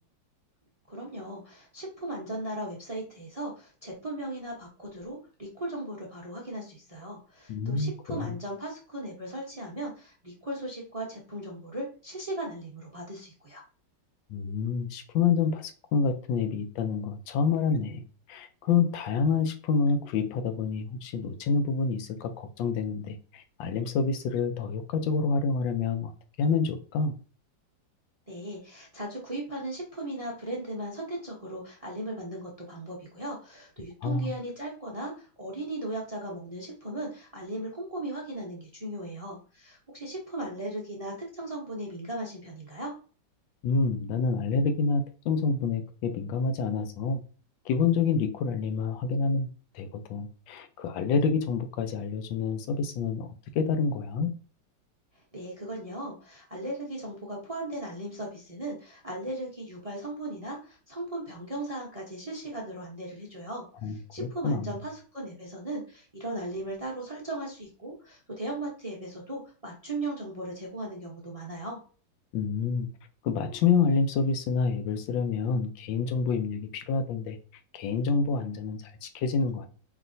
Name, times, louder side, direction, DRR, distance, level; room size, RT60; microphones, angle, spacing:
voice 1, 0.9-13.6 28.3-42.9 55.1-71.8, right 1 dB, 50° right, 0.4 m, -37 dB
voice 2, 7.5-7.9 8.2-8.4 14.3-18.0 18.3-26.1 26.4-27.1 34.0-34.3 43.6-47.2 47.7-49.5 49.7-53.3 53.5-54.3 63.8-64.7 72.3-72.9 73.2-77.4 77.7-79.7, left 5 dB, 80° left, 1.4 m, -28 dB
4.9 x 3.2 x 2.6 m
omnidirectional pair, 2.1 m